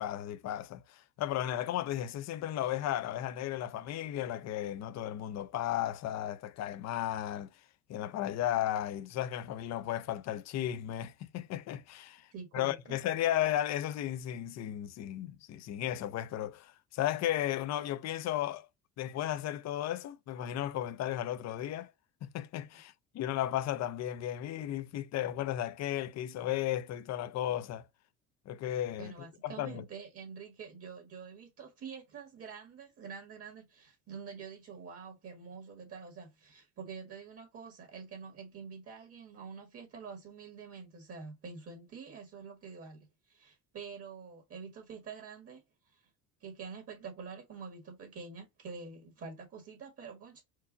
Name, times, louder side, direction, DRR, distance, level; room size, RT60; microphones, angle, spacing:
voice 1, 0.0-7.5 7.9-12.3 12.5-18.7 19.0-21.9 22.2-27.9 28.5-29.1 29.4-29.8, left 12 dB, 50° left, 0.6 m, -34 dB
voice 2, 12.3-12.9 27.5-27.6 28.9-45.6 45.9-46.0 46.4-50.4, right 5 dB, 40° right, 1.8 m, -47 dB
4.6 x 2.4 x 3.9 m
supercardioid pair, 95°, 35 cm